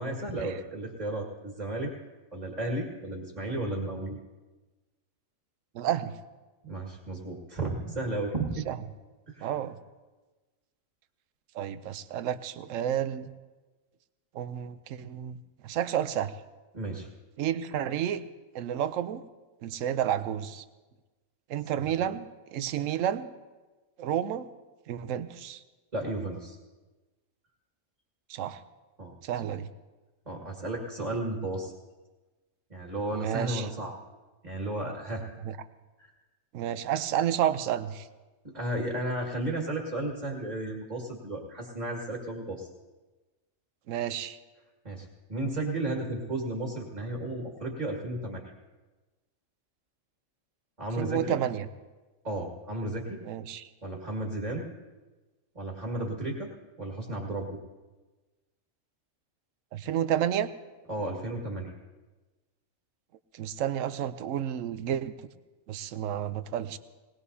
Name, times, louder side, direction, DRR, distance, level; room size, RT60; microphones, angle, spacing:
voice 1, 0.0-1.9 2.3-4.2 6.6-8.7 9.3-9.5 16.7-17.1 21.8-21.9 25.9-26.6 29.0-29.5 30.3-31.7 32.7-34.0 34.4-35.2 36.0-36.1 38.4-42.7 44.8-48.5 50.8-51.4 52.2-53.2 53.8-54.7 55.6-56.5 56.8-57.6 60.9-61.7, right 2 dB, 30° right, 0 dB, 2.0 m, -33 dB
voice 2, 5.7-6.1 8.7-8.8 9.4-9.8 11.5-13.3 14.3-15.4 15.6-16.3 17.4-18.2 18.5-19.2 19.6-20.6 21.5-23.3 24.0-24.5 24.9-25.6 28.3-28.6 29.2-29.7 33.1-33.7 35.4-35.6 36.5-38.1 43.9-44.4 51.0-51.7 53.3-53.7 59.7-60.5 63.3-65.1 65.7-66.8, right 10 dB, 75° right, 12 dB, 1.0 m, -30 dB
20.0 x 19.0 x 2.8 m, 1.2 s
omnidirectional pair, 1.4 m